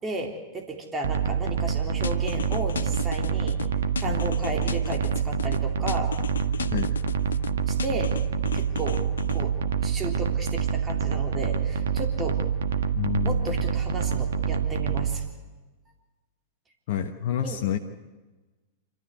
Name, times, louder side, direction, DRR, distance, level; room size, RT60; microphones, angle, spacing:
voice 1, 0.0-3.6 4.0-6.1 7.7-8.2 8.5-12.4 13.2-15.2 17.4-17.6, right 2 dB, 20° right, 2 dB, 3.4 m, -34 dB
sound 1, 1.0-15.1, right 7 dB, 70° right, 1.5 m, -26 dB
sound 2, 2.0-3.7 4.0-5.6 5.9-7.5 7.8-9.4, left 6 dB, 75° left, 0.7 m, -34 dB
voice 2, 12.9-13.5 16.9-17.8, left 8 dB, 55° left, 5 dB, 1.2 m, -28 dB
26.5 x 14.0 x 8.2 m, 1.2 s
figure-of-eight pair, 100°, 0 cm